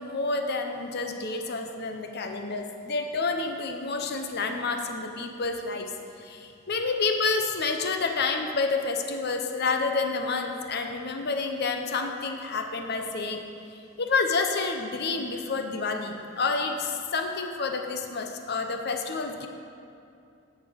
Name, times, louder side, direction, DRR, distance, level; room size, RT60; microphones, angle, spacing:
voice 1, 0.0-5.9 6.2-13.4 13.7-19.5, left 4 dB, 50° left, 5 dB, 0.7 m, -29 dB
10.0 x 6.8 x 5.2 m, 2.6 s
head